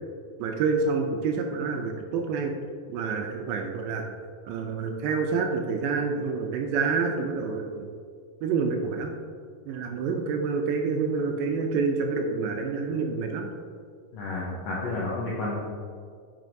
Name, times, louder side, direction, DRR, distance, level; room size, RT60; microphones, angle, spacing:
voice 1, 0.4-2.5 2.9-4.0 4.5-7.9 8.4-9.1 9.7-13.5, right 4 dB, 80° right, 3 dB, 2.1 m, -28 dB
voice 2, 14.1-15.7, left 2 dB, 75° left, -6 dB, 1.5 m, -31 dB
9.0 x 5.2 x 2.6 m, 2.1 s
omnidirectional pair, 4.2 m